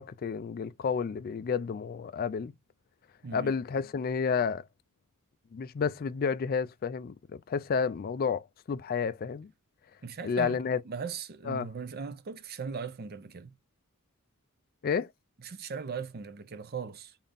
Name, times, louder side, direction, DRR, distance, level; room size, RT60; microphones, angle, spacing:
voice 1, 0.0-2.5 3.3-4.6 5.5-9.5 10.2-10.8 11.5-11.7 14.8-15.1, left 6 dB, 40° left, 0.3 m, -31 dB
voice 2, 3.2-3.6 10.0-13.6 15.4-17.2, right 5 dB, 45° right, 0.5 m, -39 dB
3.9 x 2.5 x 3.4 m
head